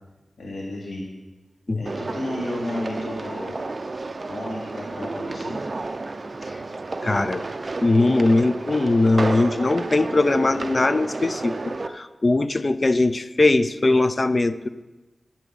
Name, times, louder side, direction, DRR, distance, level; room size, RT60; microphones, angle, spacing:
voice 1, 0.4-1.1 1.7-3.6 4.1-5.6, left 1 dB, 80° left, -4 dB, 3.3 m, -32 dB
sound 1, 1.9-11.9, right 3 dB, 45° right, 0.6 m, -31 dB
voice 2, 7.0-7.4 7.8-14.7, left 2 dB, 40° left, 13 dB, 0.5 m, -20 dB
12.0 x 6.0 x 7.0 m, 1.1 s
wide cardioid pair, 65°, 0 cm